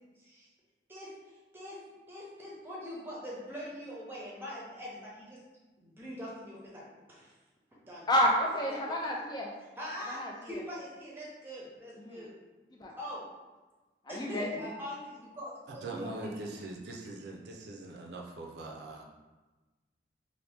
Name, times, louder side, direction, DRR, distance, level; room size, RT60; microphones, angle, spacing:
voice 1, 0.9-1.8 2.1-5.4 5.8-6.8 7.1-7.3 7.9-8.1 8.7-8.8 9.8-12.3 13.0-13.2 14.1-16.4, equal, 15° right, -5 dB, 0.7 m, -43 dB
voice 2, 8.1-9.5 10.1-10.6 12.0-12.3 12.8-12.9 14.0-14.7, equal, 25° left, -1 dB, 0.3 m, -30 dB
voice 3, 15.7-19.0, right 2 dB, 75° right, 0 dB, 0.5 m, -42 dB
2.8 x 2.5 x 3.4 m, 1.2 s
head